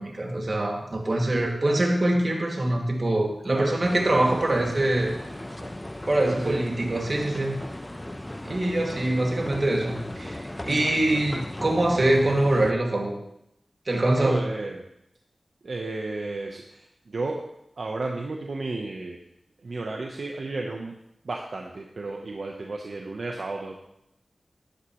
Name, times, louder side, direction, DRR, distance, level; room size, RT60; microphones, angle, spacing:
voice 1, 0.0-5.1 6.1-7.5 8.4-13.2 13.9-14.4, right 1 dB, 50° right, 0 dB, 2.4 m, -24 dB
sound 1, 3.8-12.7, left 1 dB, 20° left, 0.9 m, -37 dB
voice 2, 6.2-6.6 7.3-7.4 14.2-14.8 15.6-17.5 17.8-19.2 19.6-20.9 21.2-23.8, right 3 dB, 75° right, 0 dB, 1.1 m, -33 dB
11.5 x 11.5 x 3.2 m, 0.80 s
cardioid pair, 45°, 0 cm